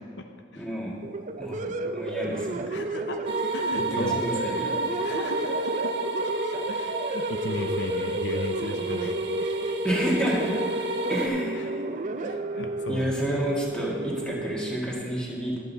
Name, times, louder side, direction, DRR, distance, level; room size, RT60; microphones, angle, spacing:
voice 1, 0.6-0.9 1.4-2.6 3.7-4.7 9.8-10.5 11.1-11.8 12.9-15.6, equal, 5° left, -5 dB, 1.9 m, -29 dB
sound 1, 1.0-14.8, right 2 dB, 40° right, 0.4 m, -32 dB
voice 2, 2.6-4.4 5.0-5.9 6.7-9.7 11.5-11.7 12.2-13.1, left 3 dB, 70° left, 5 dB, 0.6 m, -36 dB
sound 2, 3.3-11.3, right 2 dB, 65° right, 1.3 m, -30 dB
12.0 x 8.3 x 4.1 m, 2.3 s
head